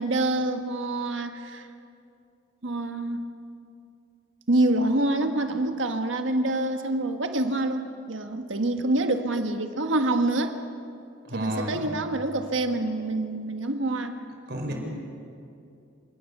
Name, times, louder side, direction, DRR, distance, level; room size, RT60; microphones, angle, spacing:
voice 1, 0.0-1.7 2.6-3.2 4.5-10.6 11.3-14.2, right 2 dB, 75° right, 6 dB, 1.5 m, -26 dB
voice 2, 11.3-11.8 14.5-14.7, right 1 dB, 55° right, 1 dB, 5.0 m, -31 dB
26.5 x 18.0 x 6.8 m, 2.6 s
head